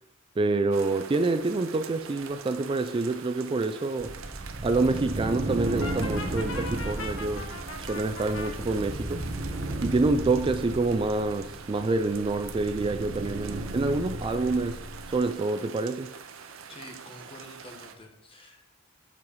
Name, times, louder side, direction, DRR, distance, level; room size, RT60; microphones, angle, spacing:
voice 1, 0.4-4.1 4.6-9.2 9.8-16.1, right 3 dB, 25° right, 0.3 m, -27 dB
sound 1, 0.7-17.9, right 7 dB, 85° right, 0.7 m, -45 dB
sound 2, 4.0-15.2, right 1 dB, 40° right, 0.9 m, -35 dB
Brass instrument, 5.8-8.5, left 3 dB, 75° left, 0.9 m, -39 dB
voice 2, 16.7-18.6, left 1 dB, 25° left, 1.3 m, -47 dB
7.4 x 4.8 x 5.4 m
head